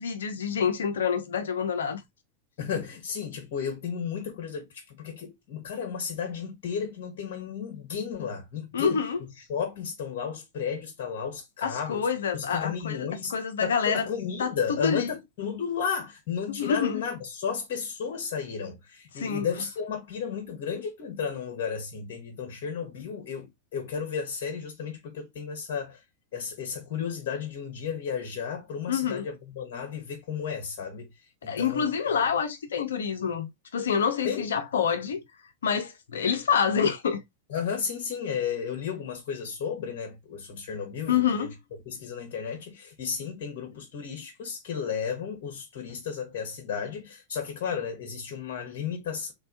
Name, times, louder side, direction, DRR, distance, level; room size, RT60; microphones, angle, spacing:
voice 1, 0.0-2.0 8.7-9.2 11.6-14.1 14.4-15.1 16.5-17.0 19.2-19.5 28.9-29.3 31.4-35.2 35.6-37.2 41.1-41.5, left 7 dB, 65° left, 0.8 m, -27 dB
voice 2, 2.6-9.0 9.5-12.1 12.3-13.3 13.6-26.0 26.3-31.1 31.4-32.2 34.2-34.5 37.5-41.5 41.9-49.3, left 7 dB, 50° left, 1.2 m, -33 dB
3.6 x 3.4 x 2.5 m
figure-of-eight pair, 90°, 0 cm